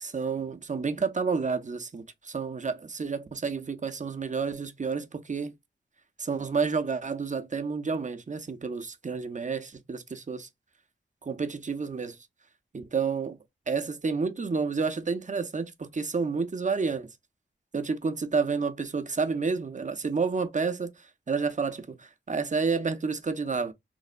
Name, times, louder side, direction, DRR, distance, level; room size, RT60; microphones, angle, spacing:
voice 1, 0.0-5.5 6.2-10.5 11.2-12.2 12.7-13.4 13.7-17.1 17.7-23.7, right 5 dB, 40° right, 0.5 m, -30 dB
3.2 x 2.0 x 2.5 m
cardioid pair, 40°, 20 cm